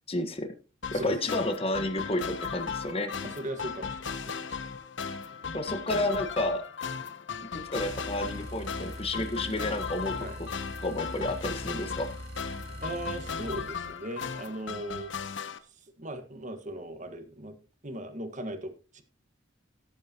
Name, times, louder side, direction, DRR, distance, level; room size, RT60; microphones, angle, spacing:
voice 1, 0.1-0.5 0.9-3.1 5.5-6.6 7.5-10.1 10.8-12.1, left 1 dB, 30° left, 6 dB, 1.5 m, -31 dB
sound 1, 0.8-15.6, left 6 dB, 65° left, 1.0 m, -37 dB
voice 2, 0.9-1.3 3.2-4.7 5.7-6.2 10.2-10.4 12.8-15.1 15.7-17.5 17.8-19.0, right 1 dB, 40° right, 8 dB, 1.7 m, -39 dB
sound 2, 7.7-13.8, right 1 dB, 55° right, 1.3 m, -42 dB
17.0 x 8.6 x 3.0 m, 0.33 s
head